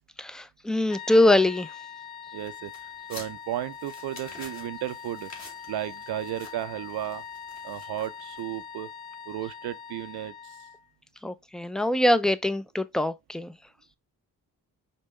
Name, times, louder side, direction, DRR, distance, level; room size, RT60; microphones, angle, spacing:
voice 1, 0.2-1.7 11.2-13.5, left 1 dB, ahead, 0.3 m, -23 dB
sound 1, 0.9-10.9, left 7 dB, 80° left, 0.5 m, -42 dB
voice 2, 2.3-2.7 3.1-5.3 5.7-7.2 7.6-8.9 9.3-10.3, right 13 dB, 85° right, 0.5 m, -34 dB
sound 2, 2.4-8.6, left 2 dB, 45° left, 1.8 m, -49 dB
5.3 x 2.2 x 3.1 m
cardioid pair, 60°, 38 cm